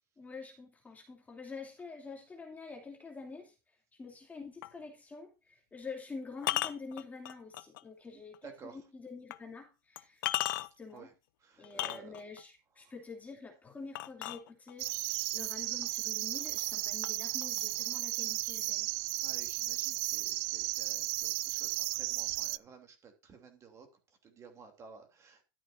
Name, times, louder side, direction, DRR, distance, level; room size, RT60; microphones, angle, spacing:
voice 1, 0.2-3.5 4.0-10.2 10.8-11.1 11.6-15.0 15.3-18.9, left 4 dB, 15° left, 2.7 m, -47 dB
sound 1, 4.6-4.8 6.4-7.8 8.3-8.4 9.3-9.4 10.0-10.9 11.6-12.4 13.9-14.9 15.8-15.9 16.3-16.8 17.0-18.0, left 15 dB, 85° left, 0.8 m, -36 dB
voice 2, 8.4-8.8 10.9-11.1 11.4-12.2 18.3-18.6 19.2-23.9 24.2-25.4, right 5 dB, 30° right, 3.1 m, -53 dB
sound 2, 14.8-22.6, right 23 dB, 55° right, 0.4 m, -34 dB
12.5 x 9.0 x 2.6 m
supercardioid pair, 140°, 11 cm